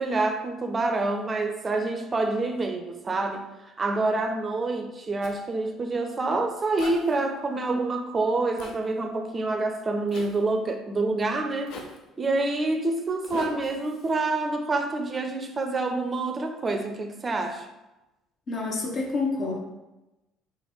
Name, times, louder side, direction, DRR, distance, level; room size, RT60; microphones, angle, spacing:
voice 1, 0.0-3.4 3.8-11.8 12.2-17.7, right 2 dB, 30° right, 5 dB, 0.4 m, -27 dB
Zipper (clothing), 5.2-5.4 6.8-7.2 8.6-8.8 10.1-10.4 11.7-12.0 13.2-14.1, left 3 dB, 65° left, 0.5 m, -39 dB
voice 2, 18.5-19.6, left 3 dB, 45° left, 0 dB, 0.9 m, -28 dB
3.3 x 2.5 x 4.1 m, 1.0 s
hypercardioid pair, 60°, 0 cm